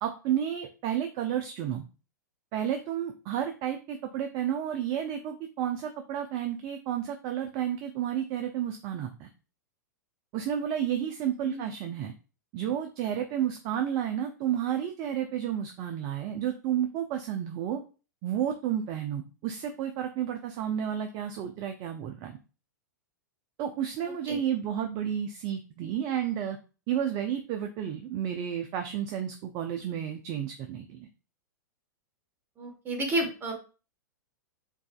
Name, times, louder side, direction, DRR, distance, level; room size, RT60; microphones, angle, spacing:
voice 1, 0.0-1.8 2.5-9.3 10.3-12.1 12.5-17.8 18.2-22.4 23.6-26.6 26.9-31.1, right 10 dB, 40° right, 6 dB, 0.5 m, -31 dB
voice 2, 11.4-11.7 24.3-24.4 32.6-33.5, right 1 dB, 20° right, 2 dB, 1.3 m, -31 dB
4.7 x 2.5 x 2.3 m, 0.34 s
figure-of-eight pair, 100°, 10 cm